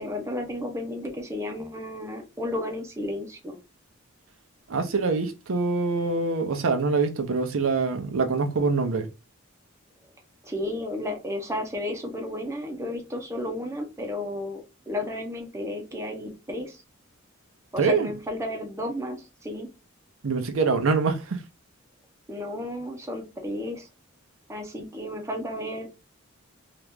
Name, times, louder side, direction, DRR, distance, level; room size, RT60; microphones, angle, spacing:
voice 1, 0.0-3.6 10.4-16.8 17.7-19.7 22.3-23.9 24.5-25.9, left 1 dB, 15° right, 0.7 m, -33 dB
voice 2, 4.7-9.1 17.8-18.1 20.2-21.4, right 4 dB, 70° right, 0.6 m, -24 dB
2.9 x 2.4 x 3.4 m
head